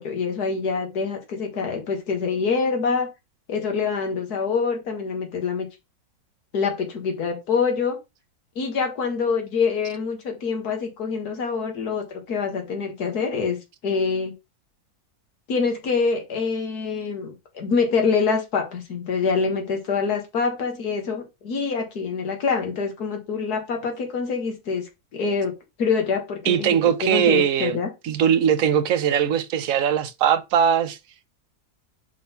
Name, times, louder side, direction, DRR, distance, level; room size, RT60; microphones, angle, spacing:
voice 1, 0.0-3.1 3.5-5.7 6.5-8.0 8.6-14.3 15.5-25.5 25.8-27.9, left 5 dB, 75° left, 2.1 m, -25 dB
voice 2, 26.4-27.8 28.0-31.0, right 8 dB, 65° right, 1.1 m, -20 dB
5.2 x 3.6 x 5.6 m
omnidirectional pair, 1.7 m